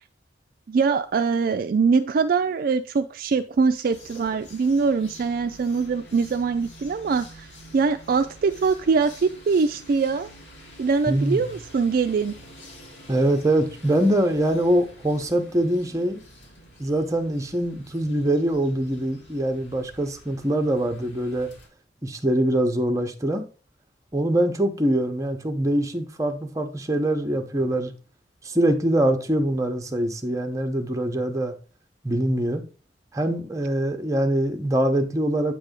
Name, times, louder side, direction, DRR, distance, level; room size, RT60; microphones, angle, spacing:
voice 1, 0.7-7.5 7.7-10.3 10.8-12.4, right 5 dB, 50° right, 0.3 m, -23 dB
sound 1, 3.5-21.7, equal, 90° left, 2.8 m, -47 dB
voice 2, 11.1-11.5 13.1-16.2 16.8-21.5 22.0-23.4 24.1-27.9 28.4-31.5 32.0-32.6 33.1-35.5, right 1 dB, 20° right, 0.8 m, -23 dB
8.1 x 3.4 x 5.0 m
head